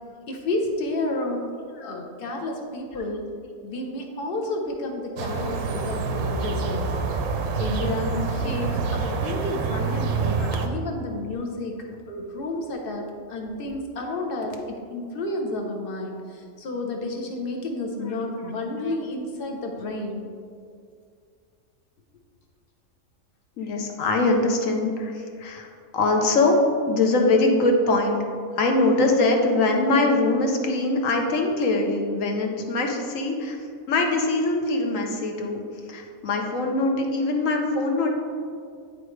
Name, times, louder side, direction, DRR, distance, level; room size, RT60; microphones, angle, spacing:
voice 1, 0.3-1.4 1.8-3.3 3.6-6.9 7.6-11.8 12.1-20.2, left 2 dB, 45° left, 1 dB, 0.9 m, -31 dB
sound 1, 5.2-10.7, right 4 dB, 75° right, 1.1 m, -27 dB
voice 2, 23.6-25.7 25.9-26.6 26.9-28.2 28.6-33.6 33.9-35.6 35.9-38.1, left 2 dB, 60° left, 2 dB, 1.2 m, -22 dB
9.9 x 4.7 x 3.2 m, 2.2 s
omnidirectional pair, 1.6 m